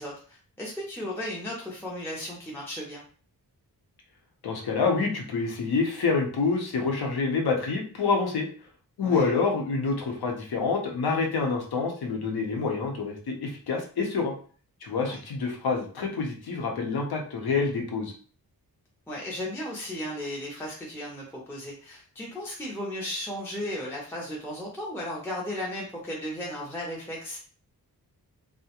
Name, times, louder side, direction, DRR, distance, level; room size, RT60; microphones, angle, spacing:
voice 1, 0.0-3.0 9.0-9.3 15.0-15.2 19.1-27.4, left 1 dB, 5° left, -4 dB, 0.4 m, -35 dB
voice 2, 4.4-8.5 9.0-14.3 14.8-18.1, left 4 dB, 80° left, 1 dB, 0.7 m, -27 dB
2.3 x 2.1 x 2.8 m, 0.42 s
wide cardioid pair, 155°, 37 cm